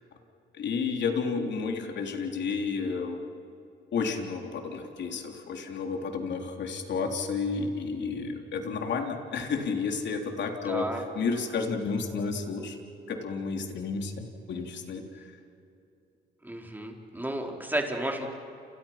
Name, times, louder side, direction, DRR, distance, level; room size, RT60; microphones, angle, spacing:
voice 1, 0.5-3.2 3.9-12.8 13.1-15.4, left 5 dB, 65° left, 3 dB, 3.7 m, -31 dB
voice 2, 10.6-11.0 16.4-18.3, right 1 dB, 10° right, 1 dB, 4.5 m, -32 dB
29.5 x 29.0 x 6.0 m, 2.7 s
cardioid pair, 90°, 20 cm